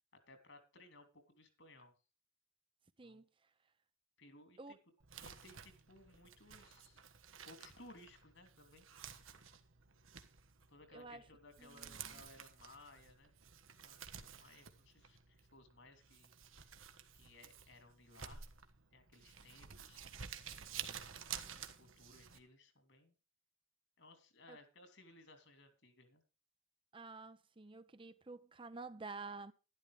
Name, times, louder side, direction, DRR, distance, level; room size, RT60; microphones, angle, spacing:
voice 1, 0.1-1.9 3.0-3.2 4.2-4.8 5.2-7.1 7.4-9.2 10.7-13.3 13.8-16.3 16.6-16.7 17.1-18.4 18.9-20.1 21.4-23.1 24.0-26.2, left 2 dB, 65° left, 3.1 m, -61 dB
Crumpling crinkling, 5.0-22.4, right 8 dB, 90° right, 1.4 m, -52 dB
voice 2, 10.9-11.2 11.6-12.2 24.5-24.6 26.9-29.5, right 3 dB, 25° right, 0.6 m, -50 dB
12.0 x 12.0 x 3.4 m
head